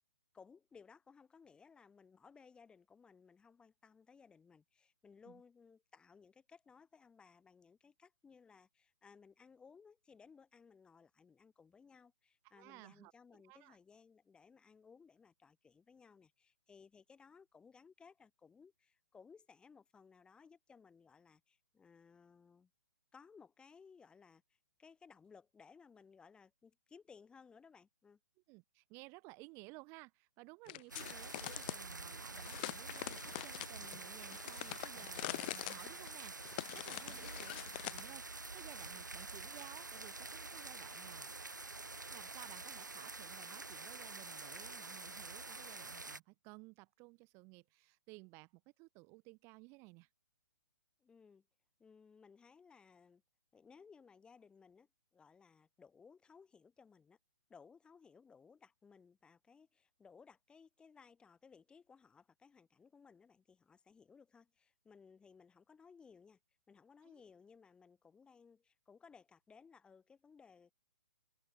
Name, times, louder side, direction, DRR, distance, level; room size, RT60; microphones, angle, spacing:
voice 1, 0.3-22.7 23.1-28.2 37.0-37.3 51.0-51.5 51.8-53.2 53.5-57.2 57.5-66.4 66.7-70.7, left 5 dB, 10° left, 4.1 m, -62 dB
voice 2, 12.5-13.1 13.4-13.8 28.5-41.3 42.1-50.1 67.0-67.2, right 28 dB, 25° right, 1.0 m, -57 dB
sound 1, 30.7-31.8 32.4-38.1, left 21 dB, 30° left, 0.4 m, -45 dB
sound 2, 30.9-46.2, right 3 dB, 90° right, 0.6 m, -48 dB
figure-of-eight pair, 125°, 10 cm